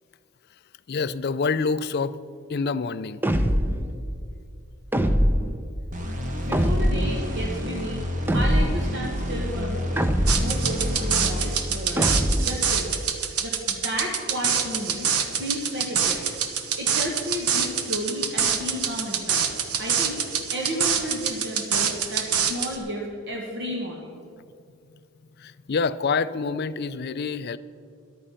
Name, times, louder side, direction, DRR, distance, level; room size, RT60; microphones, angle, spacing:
voice 1, 0.9-2.2 2.5-3.2 25.4-27.6, left 4 dB, 45° left, 15 dB, 0.4 m, -27 dB
sound 1, 3.2-3.9 4.9-5.6 6.5-7.2 8.3-8.9 10.0-10.6 12.0-12.6, equal, 10° right, 0.6 m, -22 dB
sound 2, 5.9-12.4, equal, 35° right, 1.5 m, -30 dB
voice 2, 6.4-8.0 8.3-10.0 10.4-13.1 13.4-16.2 16.8-19.5 19.8-20.2 20.5-24.2, equal, 50° right, -1 dB, 1.5 m, -32 dB
sound 3, 10.3-22.8, right 7 dB, 85° right, 1.2 m, -25 dB
14.0 x 11.0 x 5.7 m, 2.4 s
head